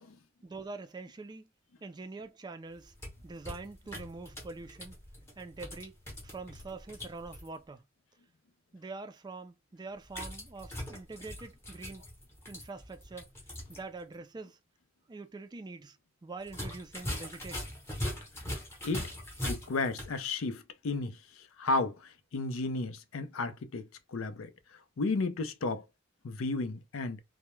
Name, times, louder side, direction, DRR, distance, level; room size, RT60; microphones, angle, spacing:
voice 1, 0.4-1.5 1.8-2.9 3.2-5.0 5.4-6.0 6.2-7.8 8.7-12.0 12.5-13.3 13.7-14.6 15.1-17.7, right 3 dB, 20° right, 0.3 m, -44 dB
sound 1, 2.7-7.5 10.1-13.8 14.1-14.2 16.4-20.2, left 1 dB, 15° left, 0.8 m, -41 dB
voice 2, 19.4-25.9 26.2-27.2, left 3 dB, 90° left, 0.5 m, -33 dB
2.2 x 2.0 x 3.0 m
head